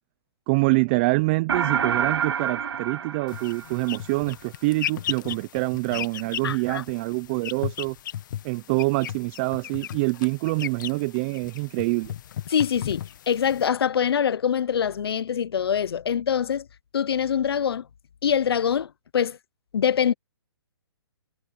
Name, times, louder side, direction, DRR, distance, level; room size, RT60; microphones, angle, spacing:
voice 1, 0.5-8.0 8.4-12.1, right 26 dB, 30° right, 0.6 m, -25 dB
sound 1, 1.5-4.1, right 8 dB, 75° right, 1.8 m, -27 dB
sound 2, 3.3-13.7, left 11 dB, 50° left, 1.5 m, -36 dB
voice 2, 6.4-6.8 12.5-16.7 16.9-17.9 18.2-19.4 19.7-20.1, left 8 dB, 70° left, 1.0 m, -24 dB
hypercardioid pair, 150°, 13 cm